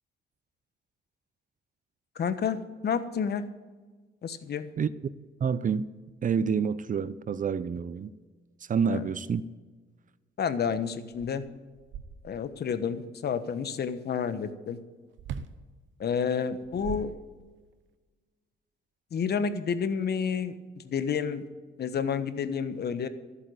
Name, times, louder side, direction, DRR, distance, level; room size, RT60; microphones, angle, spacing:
voice 1, 2.1-3.4 4.2-4.7 8.9-9.0 10.4-11.4 12.2-14.8 16.0-17.1 19.1-20.6 20.8-21.5 21.8-23.1, left 6 dB, 55° left, 1.2 m, -30 dB
voice 2, 5.4-5.9 6.2-8.1 8.7-9.4, right 6 dB, 40° right, 0.6 m, -28 dB
sound 1, 11.1-12.6 15.2-15.6 16.5-17.7, right 7 dB, 70° right, 0.9 m, -41 dB
14.0 x 8.4 x 7.9 m
cardioid pair, 90°, 20 cm